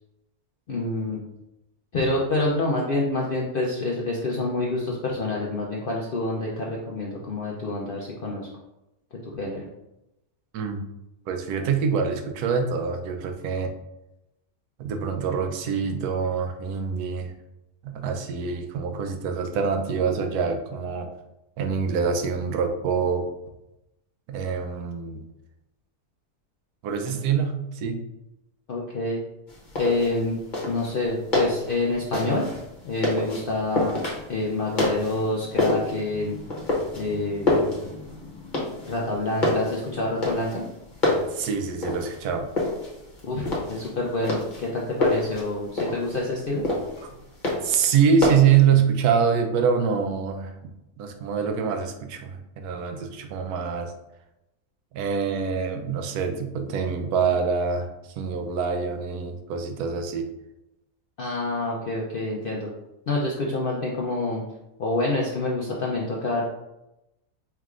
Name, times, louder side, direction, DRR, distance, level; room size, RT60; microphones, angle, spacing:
voice 1, 0.7-1.2 1.9-8.5 9.3-9.6 28.7-29.2 29.7-30.4 30.7-32.5 32.8-36.4 36.9-37.5 38.9-40.6 43.2-46.6 61.2-62.7 63.1-64.4 64.8-66.4, left 2 dB, 75° left, -3 dB, 0.5 m, -27 dB
voice 2, 11.3-13.7 14.8-17.3 17.8-21.1 21.6-23.3 24.3-25.2 26.8-28.0 41.3-42.5 47.0-47.2 47.6-50.5 51.0-53.9 54.9-57.9 58.2-60.3, right 6 dB, 75° right, 5 dB, 1.1 m, -25 dB
sound 1, 29.5-48.6, left 2 dB, 35° left, 0.9 m, -28 dB
4.7 x 3.3 x 2.4 m, 0.90 s
omnidirectional pair, 1.7 m